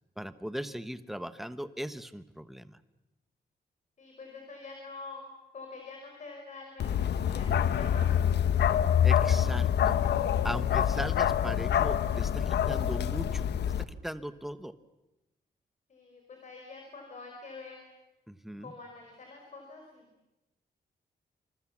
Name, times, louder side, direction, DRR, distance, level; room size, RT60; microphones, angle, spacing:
voice 1, 0.2-2.8 9.0-10.0 10.4-14.8 18.3-18.7, equal, ahead, 12 dB, 1.0 m, -39 dB
voice 2, 4.0-5.2 5.5-8.8 15.9-17.8 18.6-20.1, left 3 dB, 45° left, 2 dB, 4.8 m, -46 dB
Bark, 6.8-13.8, left 9 dB, 90° left, 1.0 m, -26 dB
28.0 x 26.5 x 7.3 m, 0.97 s
wide cardioid pair, 175°, 17 cm